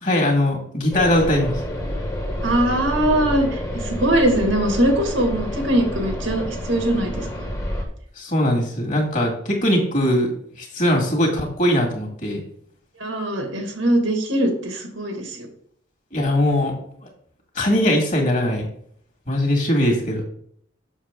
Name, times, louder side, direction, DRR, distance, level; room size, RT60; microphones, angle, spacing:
voice 1, 0.0-1.6 8.2-10.3 10.6-12.4 16.1-16.7 17.6-18.6 19.3-20.2, left 1 dB, 40° left, 1 dB, 2.0 m, -20 dB
sound 1, 0.9-7.8, equal, 15° left, 1.2 m, -29 dB
voice 2, 2.4-7.3 13.0-15.5, right 1 dB, 75° right, 3 dB, 1.9 m, -21 dB
7.3 x 6.3 x 3.7 m, 0.65 s
head